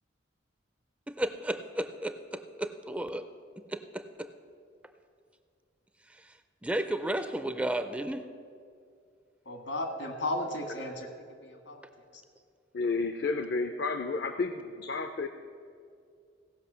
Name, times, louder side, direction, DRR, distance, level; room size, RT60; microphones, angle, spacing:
voice 1, 1.1-3.3 3.7-4.3 6.2-6.3 6.6-8.2, right 1 dB, 5° right, 9 dB, 0.4 m, -33 dB
voice 2, 9.5-11.1 11.4-11.9, left 1 dB, 80° left, 4 dB, 1.8 m, -34 dB
voice 3, 12.7-15.3, left 3 dB, 60° left, 8 dB, 0.5 m, -31 dB
17.0 x 5.7 x 6.8 m, 2.3 s
head